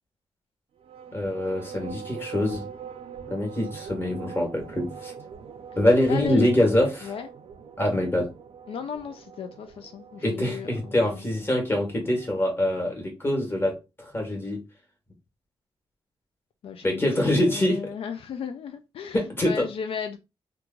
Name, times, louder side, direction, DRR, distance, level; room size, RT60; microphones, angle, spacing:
sound 1, 0.8-12.7, right 7 dB, 85° right, 0.5 m, -43 dB
voice 1, 1.1-2.6 3.3-5.1 5.7-7.1 7.8-8.3 10.2-14.6 16.8-17.8 19.1-19.6, left 1 dB, 25° left, 1.3 m, -24 dB
voice 2, 6.1-6.5 7.0-7.3 8.7-11.2 16.6-19.2 19.4-20.2, left 7 dB, 75° left, 0.3 m, -35 dB
3.0 x 2.3 x 3.6 m
wide cardioid pair, 140°, 10 cm